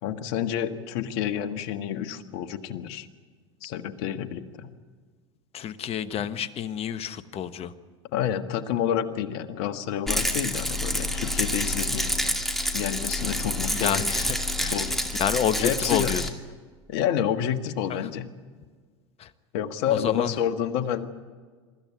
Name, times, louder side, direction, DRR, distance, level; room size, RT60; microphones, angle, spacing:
voice 1, 0.0-3.1 3.6-4.7 6.2-6.3 8.1-12.2 12.7-14.0 14.7-15.0 15.6-16.1 16.9-18.3 19.5-21.1, left 9 dB, 65° left, 9 dB, 1.5 m, -29 dB
voice 2, 5.5-7.7 13.6-14.8 15.2-16.3 19.2-19.3 19.9-20.3, left 9 dB, 40° left, 12 dB, 1.2 m, -29 dB
Rattle, 10.1-16.3, left 1 dB, ahead, 2.5 m, -28 dB
24.0 x 14.0 x 9.6 m, 1.6 s
hypercardioid pair, 85°, 15 cm